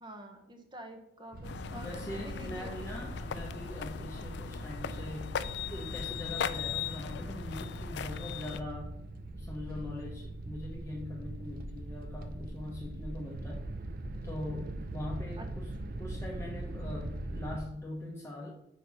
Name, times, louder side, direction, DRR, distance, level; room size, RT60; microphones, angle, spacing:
voice 1, 0.0-3.1 15.4-15.5, right 1 dB, 25° right, 5 dB, 0.9 m, -48 dB
sound 1, 1.3-17.6, right 1 dB, 55° right, 0.5 m, -41 dB
sound 2, 1.4-8.6, left 7 dB, 65° left, 0.3 m, -39 dB
voice 2, 1.7-5.3 5.7-9.0 9.3-13.7 14.2-15.7 16.0-18.5, left 1 dB, 15° left, -3 dB, 0.8 m, -42 dB
5.0 x 4.3 x 5.6 m, 0.80 s
head